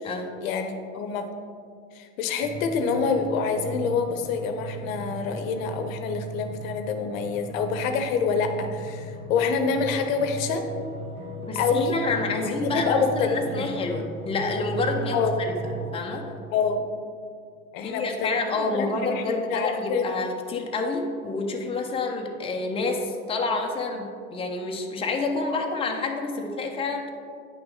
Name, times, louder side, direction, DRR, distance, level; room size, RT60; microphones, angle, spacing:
voice 1, 0.4-1.3 1.9-10.6 11.5-11.9 12.6-13.7 15.1-15.3 16.5-16.9 17.7-20.1, left 5 dB, 60° left, 7 dB, 0.9 m, -26 dB
sound 1, 2.4-16.0, right 3 dB, 75° right, 1.5 m, -36 dB
voice 2, 11.4-15.5 15.9-16.3 17.8-27.1, left 3 dB, 10° left, 1 dB, 0.8 m, -28 dB
9.1 x 5.8 x 3.7 m, 2.3 s
hypercardioid pair, 85°, 46 cm